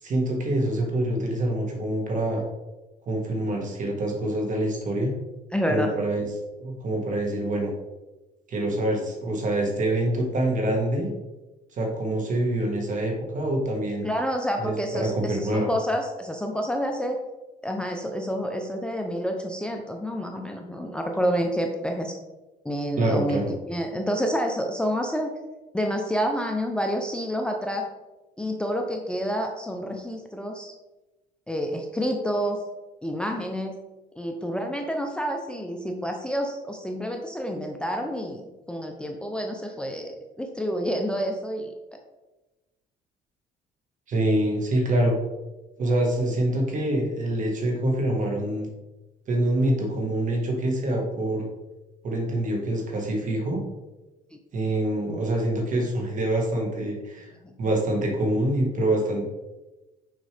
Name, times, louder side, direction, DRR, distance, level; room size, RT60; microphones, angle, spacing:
voice 1, 0.0-2.4 3.1-5.1 5.7-6.3 6.6-7.7 8.5-11.1 11.7-14.1 14.6-15.7 23.0-23.5 44.1-45.1 45.8-48.7 49.3-51.5 52.0-53.6 54.5-57.3 57.6-59.2, right 1 dB, 50° right, 1 dB, 1.7 m, -25 dB
voice 2, 5.5-6.0 14.0-17.2 17.6-22.1 22.6-23.4 23.7-25.3 25.7-27.8 28.4-30.7 31.5-32.6 33.0-33.8 34.2-38.4 38.7-41.7 54.3-54.4 57.4-57.5, equal, 5° left, 2 dB, 0.6 m, -28 dB
6.3 x 5.2 x 3.4 m, 1.1 s
cardioid pair, 110°, 17 cm